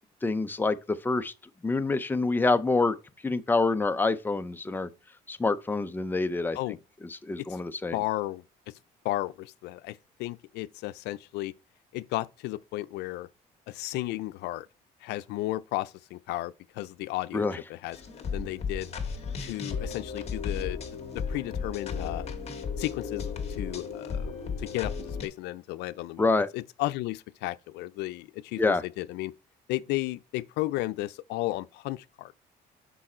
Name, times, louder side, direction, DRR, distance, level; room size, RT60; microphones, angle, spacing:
voice 1, 0.2-1.3 1.6-2.9 3.2-4.9 5.3-6.6 7.2-7.9 17.3-17.6 26.2-26.5 28.6-28.8, left 3 dB, 10° left, 0.6 m, -26 dB
voice 2, 7.9-8.7 9.0-11.5 11.9-13.3 13.7-14.7 15.0-18.9 19.4-20.8 21.1-22.3 22.8-24.3 24.6-29.3 29.7-32.3, left 17 dB, 85° left, 0.5 m, -34 dB
sound 1, 17.9-25.3, left 5 dB, 40° left, 2.0 m, -34 dB
6.2 x 5.4 x 4.3 m
cardioid pair, 110°, 17 cm